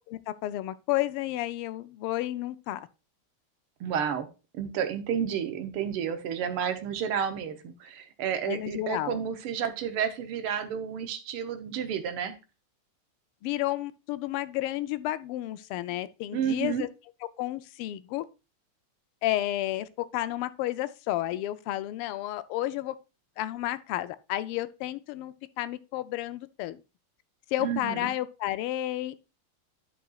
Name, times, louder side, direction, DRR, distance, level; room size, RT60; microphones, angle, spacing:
voice 1, 0.1-2.9 8.5-9.2 13.4-16.9 17.4-18.2 19.2-22.9 23.4-26.8 27.5-29.3, left 14 dB, 85° left, 1.5 m, -31 dB
voice 2, 3.8-4.3 4.5-12.3 16.3-16.8 27.6-28.1, right 8 dB, 85° right, 1.8 m, -31 dB
12.0 x 5.3 x 2.3 m
omnidirectional pair, 2.4 m